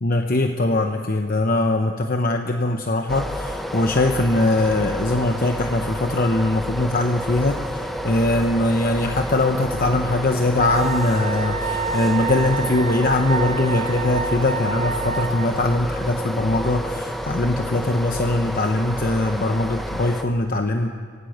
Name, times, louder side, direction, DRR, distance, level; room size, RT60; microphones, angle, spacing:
voice 1, 0.0-20.9, left 2 dB, 45° left, 5 dB, 0.9 m, -21 dB
sound 1, 3.1-20.2, equal, ahead, 0.8 m, -29 dB
Wind instrument woodwind instrument, 10.6-15.5, right 6 dB, 35° right, 0.8 m, -29 dB
26.0 x 16.5 x 8.0 m, 2.1 s
head